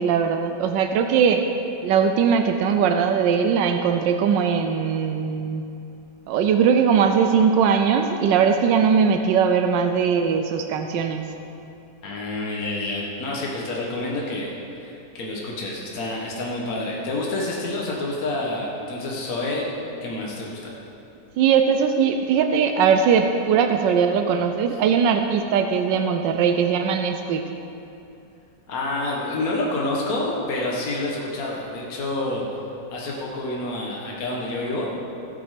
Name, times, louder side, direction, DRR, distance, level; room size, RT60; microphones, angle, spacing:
voice 1, 0.0-1.4 1.8-5.6 6.3-11.2 21.4-27.4, right 6 dB, 90° right, 6 dB, 1.3 m, -20 dB
voice 2, 12.0-14.5 14.8-19.8 20.0-20.7 28.7-32.4 32.9-34.9, left 2 dB, 55° left, -3 dB, 1.8 m, -28 dB
15.5 x 6.4 x 5.0 m, 2.8 s
omnidirectional pair, 1.9 m